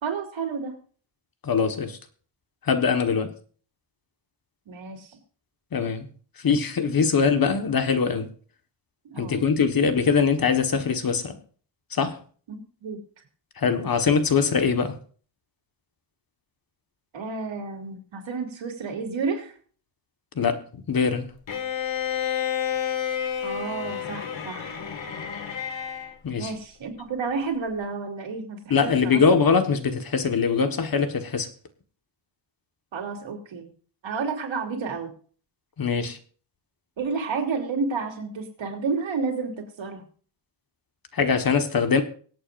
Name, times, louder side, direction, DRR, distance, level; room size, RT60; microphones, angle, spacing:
voice 1, 0.0-0.8 4.7-5.1 9.0-9.4 12.5-13.0 17.1-19.5 23.4-24.8 26.4-29.2 32.9-33.7 34.0-35.1 37.0-40.0, right 4 dB, 80° right, 3.3 m, -31 dB
voice 2, 1.4-2.0 2.6-3.3 5.7-6.1 6.4-8.3 9.2-11.4 11.9-12.2 13.6-15.0 20.3-21.3 26.2-26.5 28.7-31.5 35.8-36.2 41.1-42.0, left 5 dB, 50° left, 1.5 m, -22 dB
Bowed string instrument, 21.5-26.1, left 8 dB, 75° left, 2.0 m, -30 dB
24.5 x 8.5 x 2.6 m
wide cardioid pair, 130°, 45 cm